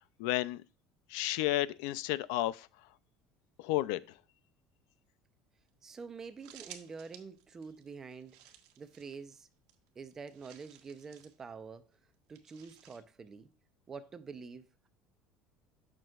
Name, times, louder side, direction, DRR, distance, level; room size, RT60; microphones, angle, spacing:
voice 1, 0.2-0.6 1.1-2.7 3.6-4.0, left 16 dB, 85° left, 0.4 m, -32 dB
sound 1, 5.7-5.8 5.9-6.0 6.2-9.4 9.7-11.4 12.3-13.0, right 11 dB, 85° right, 1.2 m, -56 dB
voice 2, 5.8-8.4 8.8-9.5 10.0-11.9 12.3-13.5 13.9-14.9, right 5 dB, 20° right, 0.6 m, -47 dB
9.1 x 6.1 x 2.4 m
cardioid pair, 150°, 2 cm